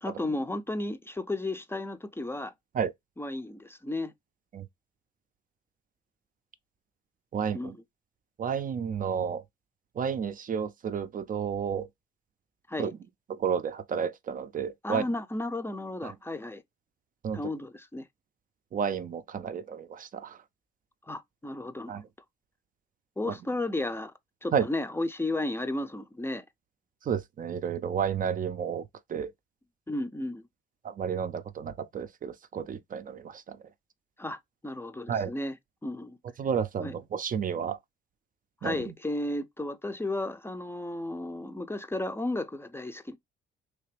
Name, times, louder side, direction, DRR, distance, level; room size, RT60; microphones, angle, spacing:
voice 1, 0.0-2.5 3.2-4.1 7.5-7.7 12.7-12.9 14.8-16.6 17.3-18.1 21.1-22.0 23.2-24.1 24.4-26.5 29.9-30.4 34.2-35.6 35.8-36.2 36.8-36.9 38.6-43.2, left 2 dB, 10° left, 0.5 m, -33 dB
voice 2, 7.3-7.8 8.4-9.4 10.0-11.9 12.8-13.0 13.3-15.1 16.0-16.2 17.2-17.4 18.7-20.4 21.9-22.0 23.3-23.4 24.5-24.7 27.0-29.3 30.8-33.7 35.1-35.3 36.4-37.8 38.6-38.9, right 7 dB, 45° right, 0.5 m, -31 dB
3.3 x 2.9 x 3.2 m
cardioid pair, 90°, 20 cm